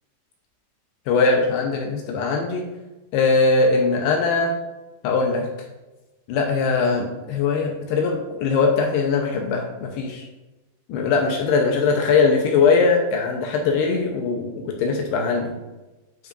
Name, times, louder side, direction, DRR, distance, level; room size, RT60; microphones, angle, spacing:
voice 1, 1.1-2.6 3.1-4.5 5.0-5.5 6.3-10.2 10.9-15.5, left 4 dB, 85° left, 1 dB, 2.6 m, -21 dB
10.5 x 4.7 x 2.5 m, 1.1 s
omnidirectional pair, 5.0 m